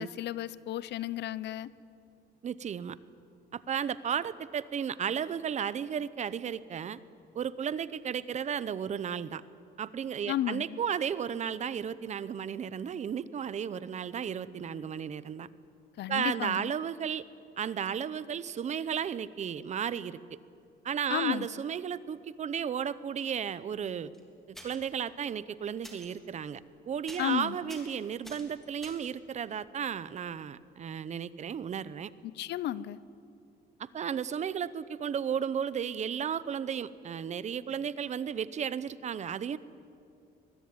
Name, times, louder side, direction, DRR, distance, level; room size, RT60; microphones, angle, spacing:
voice 1, 0.0-1.7 10.3-10.8 16.0-16.7 21.1-21.5 27.2-27.7 32.2-33.0, left 12 dB, 75° left, 18 dB, 0.8 m, -33 dB
voice 2, 2.4-3.0 3.5-7.0 7.3-9.4 9.8-15.5 16.1-17.2 17.6-20.2 20.8-24.1 24.6-26.6 26.9-32.1 33.8-39.6, right 8 dB, 40° right, 17 dB, 0.8 m, -34 dB
sound 1, 24.1-24.2 24.5-24.9 25.8-26.1 26.6-26.8 27.1-27.4 27.7-29.2 31.5-31.6 31.8-31.9, equal, ahead, 3.4 m, -49 dB
23.5 x 21.5 x 9.5 m, 2.6 s
cardioid pair, 150°, 18 cm